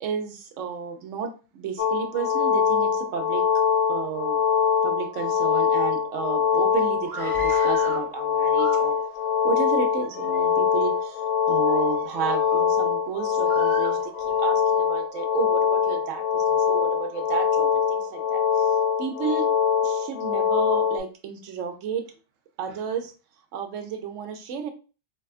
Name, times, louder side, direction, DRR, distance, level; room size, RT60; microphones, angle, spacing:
voice 1, 0.0-3.4 3.9-4.4 4.8-9.0 9.4-19.5 19.8-22.1 22.6-23.1 23.5-24.7, right 7 dB, 75° right, 7 dB, 0.9 m, -32 dB
sound 1, 1.8-21.0, left 6 dB, 60° left, 0.8 m, -23 dB
Screaming, 7.0-8.1 8.5-9.2 9.9-10.5 11.0-11.2 11.7-12.6 13.4-14.5, right 3 dB, 45° right, 1.1 m, -40 dB
4.8 x 2.2 x 2.4 m, 0.34 s
omnidirectional pair, 1.3 m